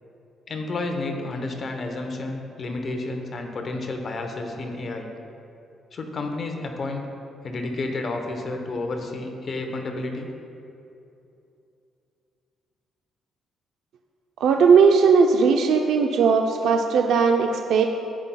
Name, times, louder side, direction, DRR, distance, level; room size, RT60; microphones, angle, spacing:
voice 1, 0.5-5.1 5.9-7.1 7.4-10.3, left 2 dB, 45° left, 4 dB, 0.9 m, -31 dB
voice 2, 14.4-17.9, right 5 dB, 75° right, 3 dB, 0.4 m, -18 dB
14.5 x 5.5 x 2.3 m, 2.7 s
cardioid pair, 90°, 0 cm